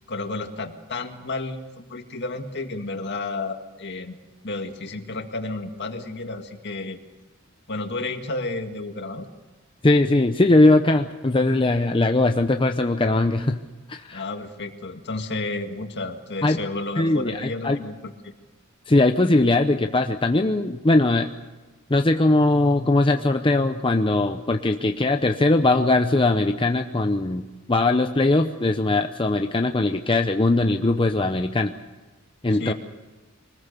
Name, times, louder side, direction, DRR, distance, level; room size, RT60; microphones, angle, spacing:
voice 1, 0.1-4.2 4.4-7.0 7.7-9.3 14.1-18.3 32.5-32.7, left 2 dB, 55° left, 5 dB, 2.0 m, -32 dB
voice 2, 9.8-13.6 13.9-14.2 16.4-16.6 17.0-17.8 18.9-21.3 21.9-31.7 32.4-32.7, left 2 dB, 25° left, 5 dB, 0.7 m, -20 dB
24.5 x 20.0 x 6.8 m, 1.2 s
head